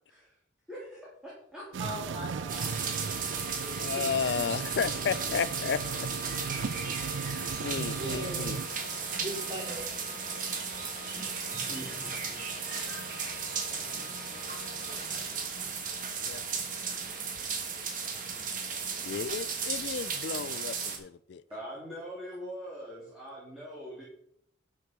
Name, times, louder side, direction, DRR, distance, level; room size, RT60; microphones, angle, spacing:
voice 1, 0.7-2.3 3.6-4.4 11.1-12.1 21.5-24.0, equal, 5° right, -8 dB, 3.1 m, -43 dB
sound 1, 1.7-8.7, right 5 dB, 85° right, 0.4 m, -37 dB
voice 2, 1.8-2.8 7.9-11.2 12.7-15.7 16.9-17.3 17.8-19.2, right 1 dB, 30° right, -1 dB, 3.1 m, -45 dB
sound 2, 2.5-21.0, right 5 dB, 45° right, 1.5 m, -35 dB
voice 3, 3.8-6.1 7.6-8.6 11.0-11.2 11.7-11.8 16.2-16.4 19.0-21.4, left 6 dB, 70° left, 17 dB, 0.4 m, -33 dB
Organ, 4.8-15.5, left 3 dB, 35° left, 1.2 m, -49 dB
11.5 x 6.5 x 4.5 m, 0.69 s
head